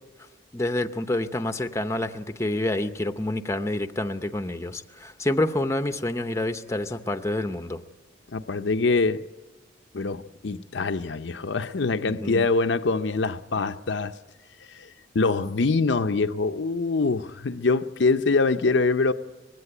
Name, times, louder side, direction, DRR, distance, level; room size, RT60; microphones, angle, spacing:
voice 1, 0.5-7.8 12.0-12.5, left 1 dB, 15° left, 0.7 m, -28 dB
voice 2, 8.3-9.2 9.9-14.1 14.7-14.9 15.1-19.1, left 3 dB, 60° left, 0.6 m, -24 dB
20.5 x 16.5 x 9.9 m
head